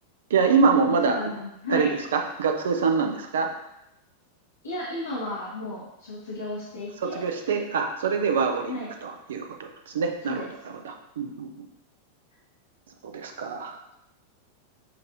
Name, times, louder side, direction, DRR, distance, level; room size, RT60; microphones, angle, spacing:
voice 1, 0.3-1.2 1.7-3.5 7.0-10.5 10.8-11.5 13.1-13.8, right 5 dB, 60° right, 5 dB, 0.5 m, -25 dB
voice 2, 1.0-1.9 4.6-7.2 8.7-8.9 10.2-10.5, left 2 dB, 75° left, -7 dB, 0.9 m, -33 dB
6.7 x 2.6 x 2.6 m, 0.86 s
figure-of-eight pair, 90°, 0 cm